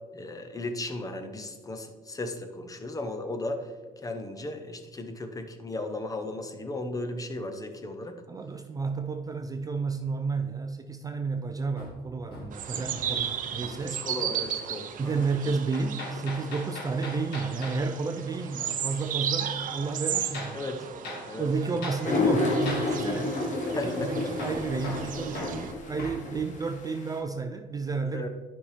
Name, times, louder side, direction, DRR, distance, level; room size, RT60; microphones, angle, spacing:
voice 1, 0.1-3.7 4.0-8.2 13.8-15.3 20.5-20.9 21.3-21.5 23.8-24.3 28.1-28.3, left 2 dB, 20° left, 7 dB, 0.8 m, -36 dB
voice 2, 8.3-14.0 15.0-20.7 21.4-23.4 23.8-28.3, right 4 dB, 20° right, 6 dB, 0.4 m, -31 dB
Hammer, 11.8-13.2 13.5-13.8 15.7-17.8 20.3-20.6 21.0-21.3 21.8-22.1 22.7-22.9 24.4-26.2, left 2 dB, 75° left, 1.8 m, -39 dB
sound 1, 12.5-25.7, right 9 dB, 50° right, 0.7 m, -35 dB
sound 2, 22.0-27.2, left 2 dB, 45° left, 1.3 m, -29 dB
9.9 x 5.3 x 3.3 m, 1.4 s
cardioid pair, 110°, 17 cm